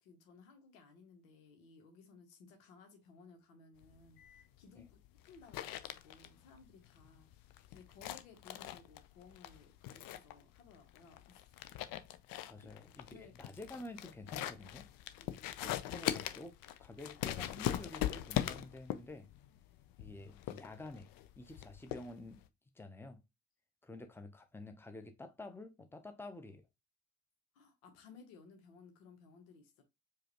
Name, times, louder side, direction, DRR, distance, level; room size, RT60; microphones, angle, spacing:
voice 1, 0.0-5.0 5.2-11.6 12.6-13.3 15.2-15.4 27.5-29.8, left 5 dB, 75° left, 1.2 m, -59 dB
sound 1, 3.8-22.5, left 12 dB, 55° left, 0.6 m, -41 dB
voice 2, 12.5-14.8 15.6-19.3 20.0-22.4 22.8-23.2 23.8-26.6, left 2 dB, 5° left, 0.9 m, -50 dB
4.8 x 2.5 x 3.0 m
hypercardioid pair, 45°, 41 cm